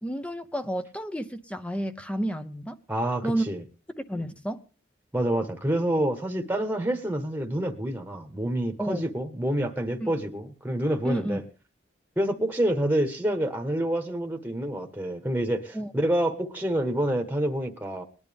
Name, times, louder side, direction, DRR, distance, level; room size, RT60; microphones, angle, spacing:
voice 1, 0.0-2.8 3.2-3.4 4.0-4.6 8.8-9.1 10.0-10.1 11.0-11.4 15.7-15.9, right 1 dB, 5° left, 0.7 m, -31 dB
voice 2, 2.9-3.6 5.1-11.4 12.2-18.0, right 1 dB, 10° right, 1.2 m, -27 dB
20.5 x 10.5 x 3.5 m
head